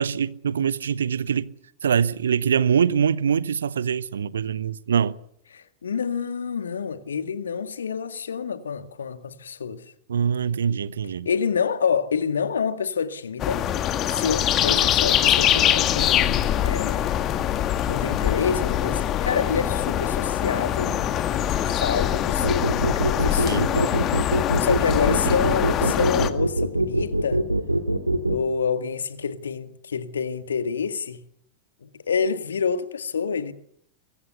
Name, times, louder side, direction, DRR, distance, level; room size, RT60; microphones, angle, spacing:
voice 1, 0.0-1.5 1.8-5.1 10.1-11.3 23.4-23.7, right 7 dB, 65° right, 0.9 m, -23 dB
voice 2, 5.5-9.8 11.3-13.6 14.1-17.1 17.9-21.1 21.6-23.9 24.6-27.4 28.3-31.2 31.8-33.5, left 6 dB, 70° left, 1.9 m, -27 dB
sound 1, 13.4-26.3, left 11 dB, 30° left, 1.9 m, -23 dB
sound 2, 22.4-28.4, right 1 dB, 85° right, 2.2 m, -23 dB
24.0 x 23.0 x 7.0 m
figure-of-eight pair, 90°, 0 cm